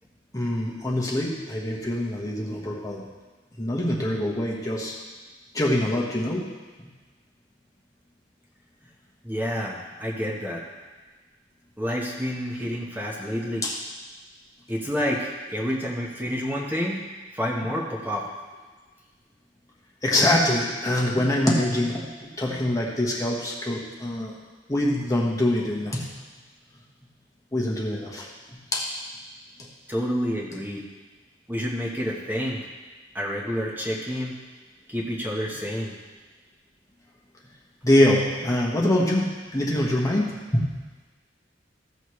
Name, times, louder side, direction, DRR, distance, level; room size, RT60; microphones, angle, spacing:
voice 1, 0.3-3.0 3.6-5.0 5.5-6.5 6.8-6.9 13.6-13.8 20.0-24.4 24.7-26.1 27.5-28.3 28.7-28.9 29.6-29.7 37.8-40.8, left 1 dB, 20° left, -3 dB, 1.2 m, -24 dB
voice 2, 9.2-10.6 11.8-13.7 14.7-17.0 17.3-18.3 29.9-30.9 31.5-32.6 33.1-34.3 34.9-35.9, equal, 10° right, -3 dB, 1.2 m, -29 dB
15.0 x 6.5 x 3.2 m, 1.3 s
head